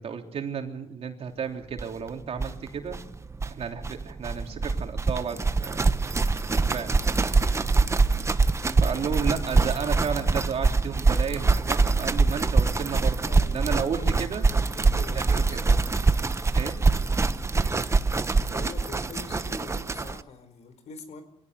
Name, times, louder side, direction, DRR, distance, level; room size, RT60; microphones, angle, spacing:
voice 1, 0.0-3.0 3.4-6.0 6.7-7.1 8.8-13.2 13.5-14.5 15.1-15.7 16.5-16.8, right 6 dB, 60° right, 4 dB, 3.4 m, -33 dB
sound 1, 1.8-1.9 2.1-2.2 2.3-20.2, right 3 dB, 25° right, 1.1 m, -24 dB
voice 2, 13.2-13.9 14.6-15.9 18.5-21.2, left 4 dB, 75° left, 10 dB, 4.7 m, -44 dB
23.5 x 17.5 x 9.4 m, 0.77 s
cardioid pair, 100°, 12 cm